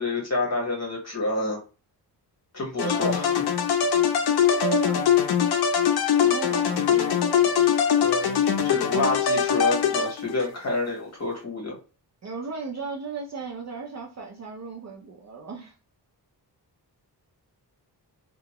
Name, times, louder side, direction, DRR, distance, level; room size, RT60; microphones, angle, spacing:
voice 1, 0.0-1.6 2.5-3.2 8.0-11.8, left 2 dB, 40° left, -1 dB, 1.2 m, -28 dB
sound 1, 2.8-10.5, left 8 dB, 65° left, 0.6 m, -22 dB
voice 2, 2.8-3.4 4.5-5.2 6.2-7.5 12.2-15.7, right 5 dB, 40° right, -1 dB, 0.5 m, -35 dB
2.8 x 2.4 x 2.9 m, 0.35 s
wide cardioid pair, 165°, 41 cm